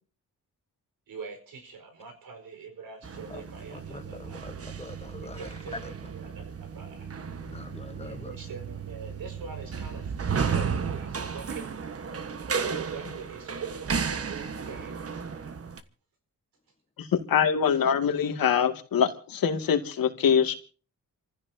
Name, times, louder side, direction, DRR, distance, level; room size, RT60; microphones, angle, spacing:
voice 1, 1.1-4.4 5.2-7.2 8.0-11.8 12.4-15.1 15.4-15.6, right 5 dB, 85° right, 4.7 m, -43 dB
sound 1, 3.0-15.8, right 6 dB, 45° right, 1.4 m, -34 dB
voice 2, 3.7-4.0 4.4-5.5 7.3-8.3, left 2 dB, 20° left, 1.4 m, -44 dB
voice 3, 17.0-20.6, left 7 dB, 85° left, 2.3 m, -24 dB
28.0 x 15.5 x 2.8 m
cardioid pair, 110°, 34 cm